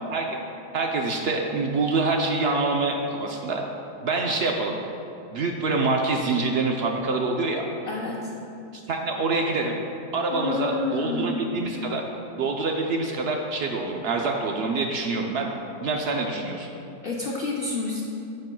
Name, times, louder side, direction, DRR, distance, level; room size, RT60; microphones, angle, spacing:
voice 1, 0.7-3.6 4.0-4.8 5.3-7.7 8.7-9.8 10.1-12.0 12.4-15.5 15.8-16.7, right 3 dB, 80° right, 1 dB, 0.5 m, -26 dB
voice 2, 7.8-8.3 10.3-11.6 17.0-18.0, left 3 dB, 80° left, -2 dB, 0.5 m, -29 dB
10.5 x 7.5 x 2.2 m, 2.8 s
omnidirectional pair, 1.7 m